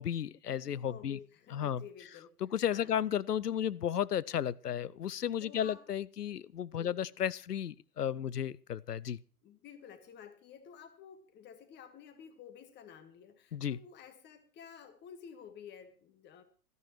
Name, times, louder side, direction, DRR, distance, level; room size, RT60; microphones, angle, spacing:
voice 1, 0.0-1.2 1.5-1.8 2.4-9.2 13.5-13.8, left 9 dB, 85° left, 20 dB, 0.6 m, -34 dB
voice 2, 0.8-2.3 2.7-2.9 5.4-5.8 6.7-7.1 9.4-16.4, left 8 dB, 25° left, 9 dB, 1.6 m, -52 dB
17.5 x 13.5 x 3.1 m, 0.38 s
figure-of-eight pair, 110°, 46 cm